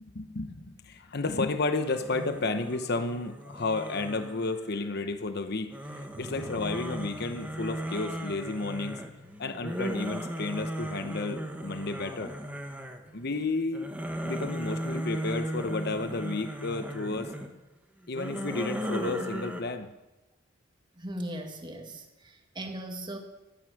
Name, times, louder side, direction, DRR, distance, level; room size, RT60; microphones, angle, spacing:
voice 1, 0.0-9.0 9.4-12.3 13.1-13.9 14.2-17.3 18.1-19.9, left 3 dB, 55° left, 8 dB, 0.9 m, -32 dB
sound 1, 1.7-5.1 5.7-13.2 13.6-17.5 18.0-19.6, equal, 10° right, 1.4 m, -36 dB
sound 2, 6.1-13.0, left 2 dB, 50° right, 2.3 m, -54 dB
voice 2, 21.0-23.2, right 1 dB, 25° right, 4 dB, 1.8 m, -38 dB
15.0 x 12.0 x 6.5 m, 1.0 s
head